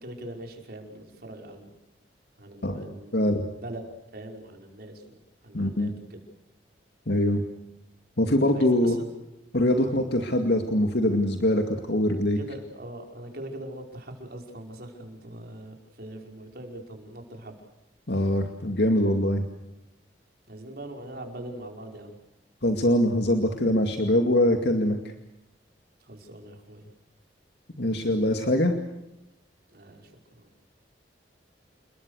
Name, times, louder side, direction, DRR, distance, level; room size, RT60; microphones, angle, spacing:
voice 1, 0.0-1.7 2.4-3.2 3.6-3.8 4.1-5.0 5.4-6.2 8.5-9.0 9.7-9.9 12.4-17.5 20.5-22.1 26.0-26.9 29.7-30.5, right 1 dB, 60° right, 3 dB, 5.3 m, -42 dB
voice 2, 2.6-3.4 5.5-5.9 7.1-7.4 8.2-9.0 9.5-12.4 18.1-19.4 22.6-25.0 27.8-28.7, left 1 dB, 70° left, 5 dB, 2.3 m, -23 dB
29.5 x 22.0 x 6.5 m, 0.88 s
head